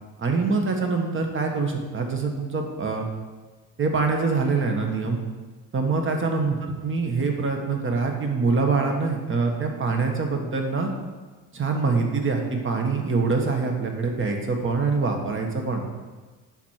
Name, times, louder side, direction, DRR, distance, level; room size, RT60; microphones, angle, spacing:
voice 1, 0.2-3.1 3.8-5.2 5.7-10.9 11.5-15.8, right 4 dB, 30° right, 3 dB, 1.6 m, -24 dB
9.9 x 4.5 x 6.6 m, 1.3 s
cardioid pair, 100°, 41 cm